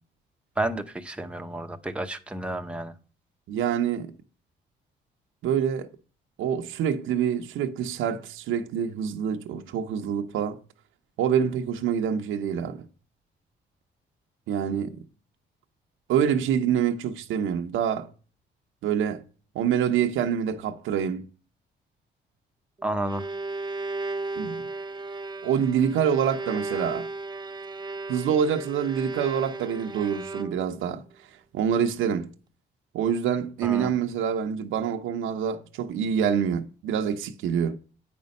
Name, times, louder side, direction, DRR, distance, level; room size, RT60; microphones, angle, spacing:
voice 1, 0.6-2.9 22.8-23.3 33.6-33.9, right 1 dB, 5° right, 0.8 m, -31 dB
voice 2, 3.5-4.1 5.4-5.9 6.4-10.6 11.2-12.8 14.5-15.0 16.1-18.1 18.8-19.2 19.5-21.2 24.4-24.6 25.4-27.1 28.1-31.0 31.5-32.3 32.9-37.8, right 8 dB, 90° right, 0.9 m, -26 dB
Bowed string instrument, 22.8-30.9, right 3 dB, 20° right, 0.4 m, -35 dB
8.6 x 5.3 x 5.3 m
cardioid pair, 90°, 20 cm